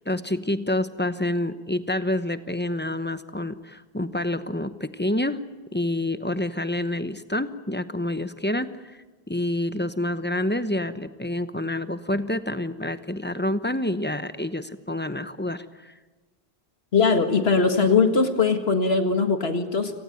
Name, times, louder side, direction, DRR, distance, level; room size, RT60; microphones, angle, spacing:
voice 1, 0.0-5.4 5.7-9.0 9.3-15.9, left 1 dB, 10° left, 12 dB, 0.9 m, -28 dB
voice 2, 16.9-19.9, left 4 dB, 75° left, 7 dB, 2.1 m, -20 dB
29.0 x 18.0 x 9.2 m, 1.2 s
omnidirectional pair, 1.1 m